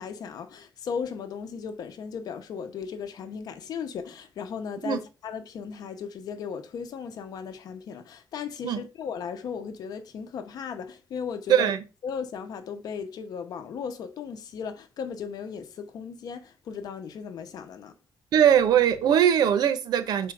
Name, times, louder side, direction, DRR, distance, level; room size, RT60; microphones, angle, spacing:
voice 1, 0.0-11.7 12.0-17.9, left 6 dB, 70° left, 0.9 m, -36 dB
voice 2, 11.5-11.8 18.3-20.3, right 9 dB, 90° right, 0.8 m, -21 dB
4.5 x 4.4 x 5.1 m
cardioid pair, 150°, 7 cm